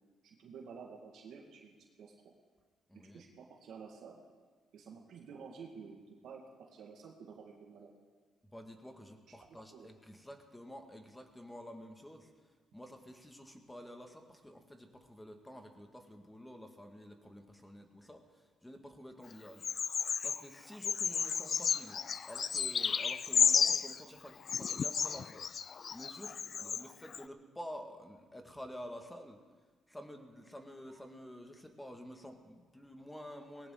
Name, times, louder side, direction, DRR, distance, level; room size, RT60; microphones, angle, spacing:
voice 1, 0.2-2.4 2.9-4.2 4.7-6.4 6.7-7.9 9.7-9.9 26.5-26.8, right 6 dB, 75° right, 0 dB, 1.9 m, -51 dB
voice 2, 2.9-3.2 8.5-12.3 12.7-19.7 20.2-25.5 25.9-29.4 29.9-33.7, equal, 10° left, 4 dB, 2.0 m, -50 dB
Bird vocalization bird call bird song, 19.6-20.4 20.8-24.0 24.5-26.8 27.1-27.2, left 6 dB, 50° left, 0.4 m, -32 dB
19.0 x 17.5 x 3.9 m, 1.4 s
cardioid pair, 90°, 0 cm